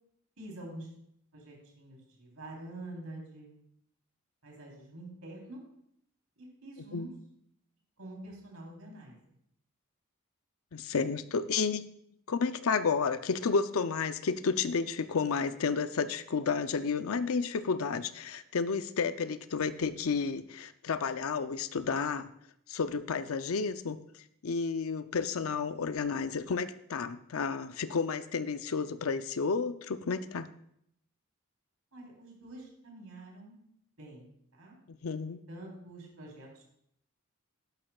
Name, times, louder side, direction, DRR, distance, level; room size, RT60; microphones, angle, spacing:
voice 1, 0.4-0.9 1.3-3.5 4.4-5.6 6.4-7.1 8.0-9.2 31.9-33.6 34.0-34.3 34.5-34.8 35.5-36.7, right 1 dB, 85° right, -2 dB, 3.6 m, -46 dB
voice 2, 10.7-11.8 12.3-22.3 22.7-24.0 24.4-30.5 34.9-35.4, left 5 dB, 75° left, 12 dB, 0.5 m, -31 dB
11.5 x 11.5 x 2.3 m, 0.73 s
head